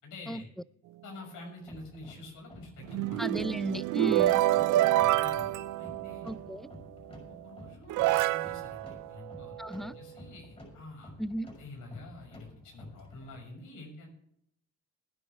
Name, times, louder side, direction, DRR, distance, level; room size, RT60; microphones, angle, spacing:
voice 1, 0.0-0.5 1.0-3.2 3.9-4.3 4.5-6.3 7.3-11.1 11.6-14.1, left 2 dB, 80° left, 6.4 m, -47 dB
sound 1, 1.6-13.5, left 1 dB, 20° left, 6.0 m, -51 dB
sound 2, 2.8-6.5 7.3-7.4 7.9-9.8, right 15 dB, 85° right, 0.6 m, -28 dB
voice 2, 3.2-4.4 6.2-6.7 9.6-10.0 11.2-11.5, equal, ahead, 0.4 m, -35 dB
19.5 x 10.0 x 3.6 m
cardioid pair, 90°, 30 cm